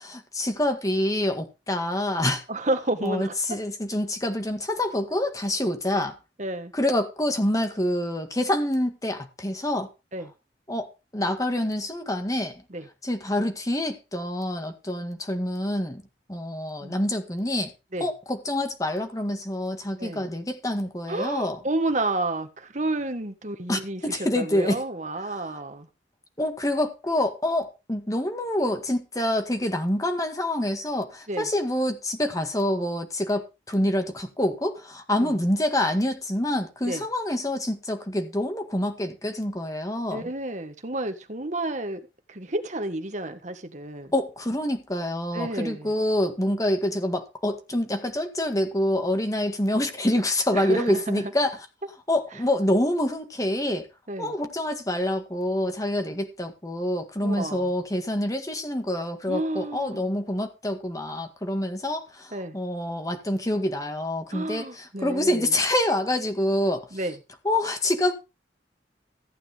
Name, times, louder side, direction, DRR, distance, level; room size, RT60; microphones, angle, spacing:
voice 1, 0.0-2.4 3.0-6.2 6.7-9.9 10.7-12.6 13.0-16.0 16.3-17.7 18.0-21.6 23.7-24.8 25.3-25.6 26.4-40.3 44.1-51.6 52.1-53.9 54.2-66.9 67.4-68.1, left 1 dB, 20° left, 1.8 m, -26 dB
voice 2, 2.5-3.3 6.4-6.7 10.1-10.3 12.7-12.9 16.8-17.0 17.9-18.1 20.0-20.3 21.1-25.9 31.3-31.5 35.1-35.3 36.8-37.0 40.1-42.0 42.3-44.1 45.3-45.9 50.5-51.2 54.1-54.3 57.2-57.6 59.3-60.0 62.3-62.5 64.3-65.5 66.9-67.2, right 2 dB, 40° right, 1.6 m, -30 dB
15.0 x 9.0 x 3.6 m
head